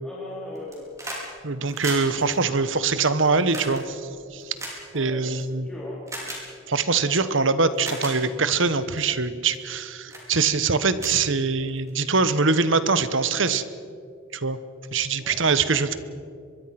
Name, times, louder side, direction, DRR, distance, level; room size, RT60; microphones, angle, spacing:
voice 1, 0.0-0.9 4.9-6.0 15.2-16.0, left 1 dB, 5° left, -6 dB, 4.2 m, -40 dB
sound 1, 0.5-1.3 1.5-5.4 6.1-6.4 7.2-7.3 7.7-8.2 8.8-9.0 9.5-9.8 10.1-10.3 10.6-10.7 11.0-11.9 13.1-13.2, right 1 dB, 15° right, 5.1 m, -36 dB
voice 2, 1.4-4.0 4.3-4.5 4.9-5.7 6.7-13.6 14.3-14.6 14.9-16.0, right 4 dB, 65° right, 13 dB, 1.2 m, -23 dB
23.5 x 22.5 x 6.0 m, 2.3 s
head